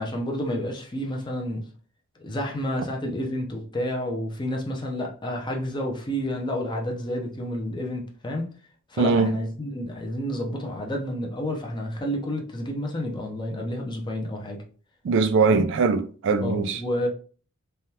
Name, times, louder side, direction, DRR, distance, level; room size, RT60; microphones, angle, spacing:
voice 1, 0.0-1.7 2.2-8.5 8.9-14.6 15.4-15.6 16.4-17.1, equal, 20° left, 0.6 m, -30 dB
voice 2, 9.0-9.3 15.0-16.8, right 4 dB, 60° right, 0.3 m, -21 dB
3.4 x 2.3 x 2.8 m
head